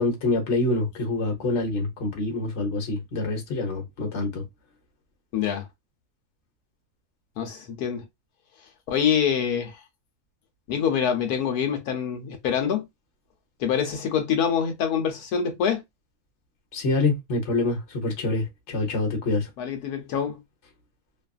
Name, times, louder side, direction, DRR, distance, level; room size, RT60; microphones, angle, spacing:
voice 1, 0.0-4.4 16.7-19.5, left 2 dB, 55° left, 1.2 m, -26 dB
voice 2, 5.3-5.7 7.4-8.0 8.9-9.7 10.7-12.8 13.6-15.8 19.6-20.4, left 8 dB, 85° left, 1.2 m, -25 dB
2.8 x 2.4 x 2.3 m
omnidirectional pair, 1.6 m